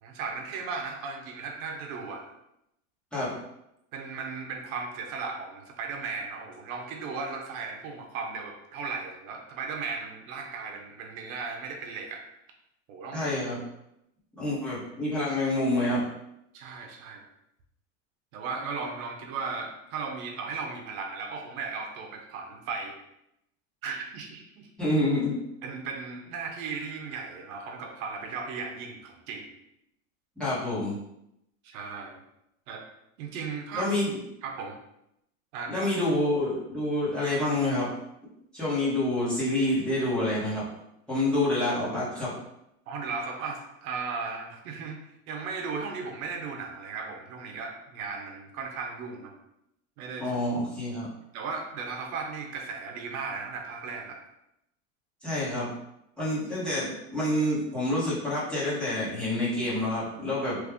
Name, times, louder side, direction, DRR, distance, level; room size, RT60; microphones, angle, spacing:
voice 1, 0.0-2.3 3.9-12.2 12.9-13.3 16.5-17.2 18.3-23.0 23.8-24.7 25.6-29.5 31.6-32.2 32.7-32.8 33.2-33.9 34.4-34.8 35.5-35.9 42.9-45.0 45.3-49.3 50.0-50.3 51.3-54.2, right 5 dB, 80° right, 2 dB, 0.8 m, -36 dB
voice 2, 13.1-13.6 14.4-16.0 24.8-25.4 30.4-30.9 33.7-34.1 35.7-37.9 38.5-40.6 41.1-42.3 50.2-51.1 55.2-55.7 56.2-60.6, left 1 dB, ahead, -10 dB, 1.1 m, -27 dB
3.1 x 2.4 x 3.5 m, 0.81 s
supercardioid pair, 140°, 40 cm